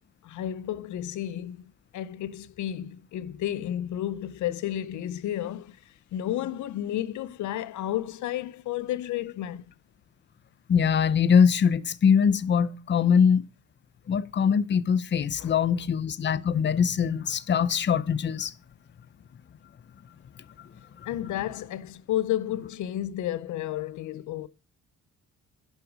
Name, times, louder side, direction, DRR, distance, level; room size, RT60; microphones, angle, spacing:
voice 1, 0.2-9.6 15.4-15.7 21.0-24.5, left 12 dB, 75° left, 0.6 m, -32 dB
voice 2, 10.7-13.4 14.1-18.5, left 7 dB, 35° left, 0.7 m, -22 dB
11.0 x 6.2 x 5.0 m
cardioid pair, 90°, 30 cm